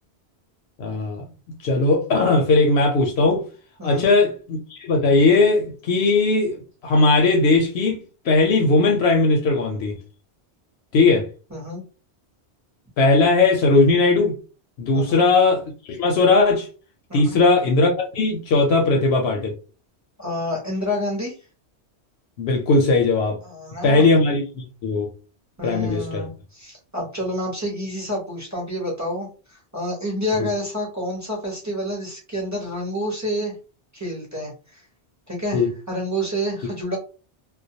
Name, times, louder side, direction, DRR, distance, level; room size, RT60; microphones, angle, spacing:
voice 1, 0.8-1.2 1.6-3.4 3.8-10.0 10.9-11.3 13.0-14.3 14.8-16.7 17.1-19.5 22.4-23.4 23.8-25.1 25.6-26.3 30.4-30.5 35.5-35.7, left 3 dB, 75° left, 0.8 m, -18 dB
voice 2, 3.8-4.1 11.5-11.8 14.9-15.2 17.1-17.4 20.2-21.3 23.4-24.0 25.6-33.6 33.9-34.8 35.3-37.0, equal, 20° right, 0.7 m, -28 dB
2.2 x 2.2 x 2.7 m
omnidirectional pair, 1.1 m